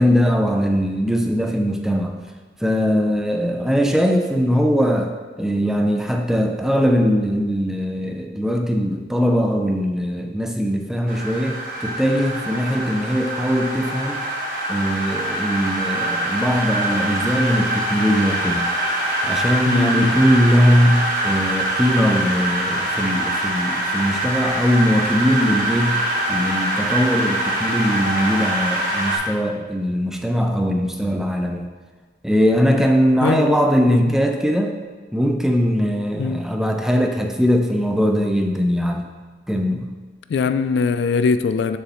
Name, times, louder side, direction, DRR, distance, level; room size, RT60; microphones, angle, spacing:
voice 1, 0.0-2.2 2.6-5.1 5.4-14.2 14.7-18.7 19.2-26.0 26.3-31.7 32.2-34.8 35.1-39.1 39.5-39.9, equal, 5° right, 3 dB, 0.4 m, -20 dB
sound 1, 11.1-29.2, right 1 dB, 50° right, 1.4 m, -24 dB
voice 2, 19.6-20.1 33.2-33.6 33.9-34.2 36.2-36.4 40.3-41.8, left 5 dB, 75° left, 11 dB, 0.3 m, -21 dB
7.0 x 6.8 x 3.0 m, 1.4 s
head